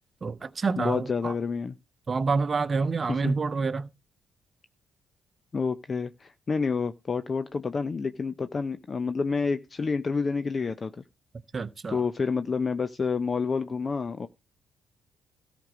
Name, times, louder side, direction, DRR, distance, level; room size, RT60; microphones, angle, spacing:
voice 1, 0.2-1.3 2.1-3.9 11.5-12.0, right 4 dB, 35° right, 0.9 m, -28 dB
voice 2, 0.8-1.8 3.1-3.3 5.5-11.0 11.9-14.3, left 5 dB, 35° left, 0.5 m, -29 dB
13.5 x 5.2 x 4.9 m
cardioid pair, 90°, 0 cm